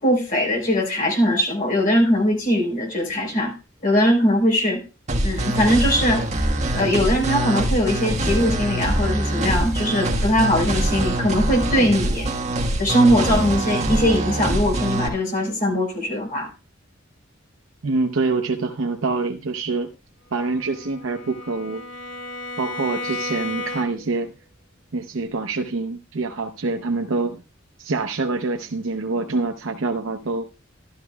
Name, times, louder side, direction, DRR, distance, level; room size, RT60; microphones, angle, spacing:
voice 1, 0.0-3.5 3.8-4.8 5.2-6.3 6.7-12.3 12.8-16.5, equal, 45° left, 1 dB, 3.9 m, -20 dB
sound 1, 5.1-15.1, right 1 dB, 35° right, 1.4 m, -24 dB
voice 2, 17.8-19.9 20.3-21.8 22.6-24.3 24.9-27.4 27.8-30.5, right 3 dB, 85° right, 4 dB, 0.7 m, -25 dB
Bowed string instrument, 20.4-24.2, left 2 dB, 65° left, 2.0 m, -33 dB
13.0 x 12.5 x 2.3 m, 0.31 s
head